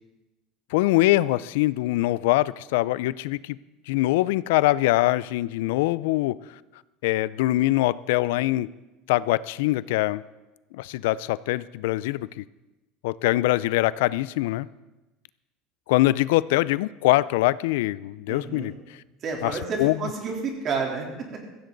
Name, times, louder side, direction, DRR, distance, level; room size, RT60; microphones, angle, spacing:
voice 1, 0.7-3.6 3.9-6.4 7.0-8.7 9.1-10.2 10.7-12.4 13.0-14.7 15.9-18.7 19.4-19.5 19.8-20.0, left 17 dB, 85° left, 19 dB, 0.4 m, -23 dB
voice 2, 18.3-18.7 19.2-21.1, right 4 dB, 35° right, 1 dB, 3.4 m, -30 dB
15.0 x 15.0 x 4.0 m, 1.0 s
supercardioid pair, 135°, 0 cm